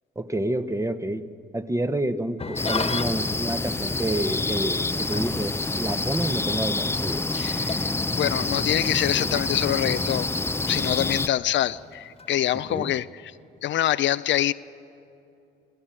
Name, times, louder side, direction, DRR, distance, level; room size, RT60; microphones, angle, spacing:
voice 1, 0.2-1.2 1.5-7.3 12.7-12.9, right 1 dB, 15° right, 11 dB, 1.0 m, -29 dB
Engine starting / Idling, 2.4-13.0, left 4 dB, 30° left, 1.5 m, -38 dB
sound 1, 2.6-11.3, left 3 dB, 10° left, 0.5 m, -27 dB
voice 2, 7.3-7.9 8.2-10.3 10.7-13.3 13.6-14.5, left 12 dB, 70° left, 15 dB, 0.5 m, -25 dB
26.5 x 17.0 x 8.9 m, 2.7 s
cardioid pair, 90°, 20 cm